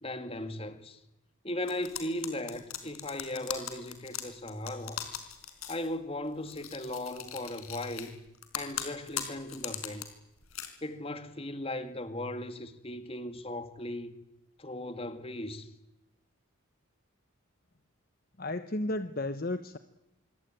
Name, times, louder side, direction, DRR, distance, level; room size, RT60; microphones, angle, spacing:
voice 1, 0.0-1.0 1.4-5.1 5.7-8.2 8.5-10.1 10.8-14.1 14.6-15.7, left 1 dB, 25° left, 2.1 m, -37 dB
sound 1, 1.7-5.9 6.5-8.1 8.4-10.0 10.4-10.7, left 10 dB, 85° left, 4.4 m, -39 dB
voice 2, 18.4-19.8, left 2 dB, 45° left, 1.0 m, -33 dB
25.5 x 24.0 x 9.1 m
head